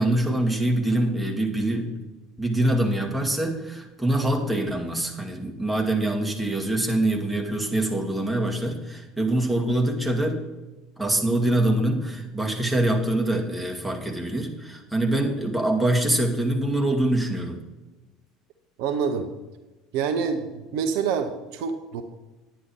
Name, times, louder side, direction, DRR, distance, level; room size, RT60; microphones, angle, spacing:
voice 1, 0.0-1.9 2.4-10.4 11.0-17.6, right 1 dB, 5° right, 0 dB, 2.3 m, -24 dB
voice 2, 18.8-19.3 19.9-20.5 20.7-22.0, right 6 dB, 60° right, 7 dB, 0.9 m, -26 dB
10.0 x 9.8 x 4.7 m, 1.2 s
figure-of-eight pair, 65°, 0 cm